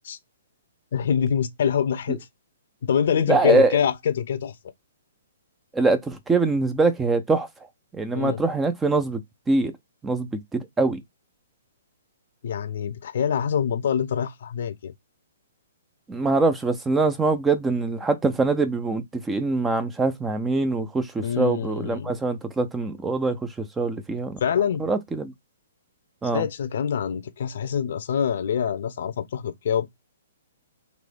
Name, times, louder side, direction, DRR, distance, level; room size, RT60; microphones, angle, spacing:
voice 1, 0.9-2.2 2.8-4.5 8.1-8.4 12.4-14.9 21.2-22.1 24.4-24.9 26.3-29.9, left 8 dB, 60° left, 0.7 m, -25 dB
voice 2, 3.3-3.8 5.7-7.5 7.9-9.2 9.5-9.7 10.0-11.0 16.1-24.4 24.8-25.3 26.2-26.5, right 3 dB, 10° right, 0.6 m, -23 dB
3.9 x 2.7 x 3.5 m
figure-of-eight pair, 125°, 0 cm